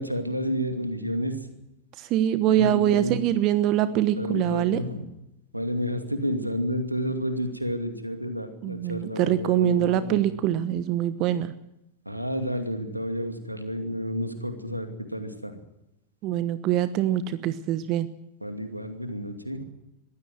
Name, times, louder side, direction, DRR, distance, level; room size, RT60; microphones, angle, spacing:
voice 1, 0.0-1.4 2.4-3.3 3.9-5.1 5.5-10.2 12.1-15.6 18.4-19.6, equal, 90° right, 7 dB, 2.5 m, -30 dB
voice 2, 2.0-4.8 8.6-11.5 16.2-18.1, right 11 dB, 40° right, 14 dB, 1.1 m, -24 dB
22.0 x 16.0 x 7.8 m, 0.88 s
figure-of-eight pair, 90°, 0 cm